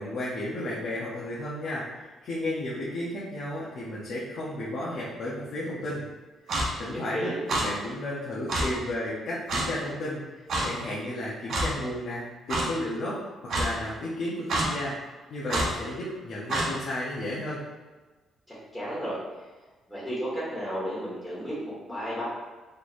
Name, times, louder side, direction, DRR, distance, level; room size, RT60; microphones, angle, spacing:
voice 1, 0.0-6.1 6.4-13.2 13.4-14.9 15.3-17.6, left 1 dB, 60° left, -6 dB, 0.8 m, -33 dB
Clock, 6.5-6.7 7.5-7.6 8.5-8.6 9.5-9.7 10.5-10.7 11.5-11.7 12.5-12.6 13.5-13.7 14.5-14.7 15.5-15.7 16.5-16.7, right 2 dB, 65° right, 0.8 m, -26 dB
voice 2, 6.9-7.4 18.5-19.2 19.9-22.3, equal, 5° left, -9 dB, 1.5 m, -33 dB
3.8 x 3.2 x 2.5 m, 1.2 s
cardioid pair, 90°, 0 cm